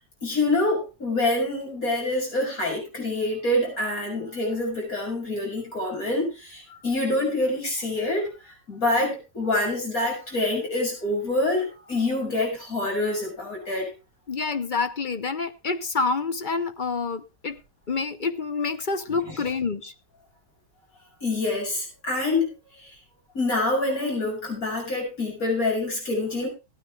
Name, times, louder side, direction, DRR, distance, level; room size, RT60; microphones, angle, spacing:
voice 1, 0.2-13.9 19.1-19.4 21.2-22.5 22.8-22.9 23.3-26.5, left 2 dB, 55° left, -1 dB, 6.8 m, -26 dB
voice 2, 14.3-17.6 17.9-19.9, left 4 dB, 40° left, 10 dB, 0.8 m, -27 dB
17.5 x 9.5 x 3.5 m, 0.28 s
omnidirectional pair, 1.8 m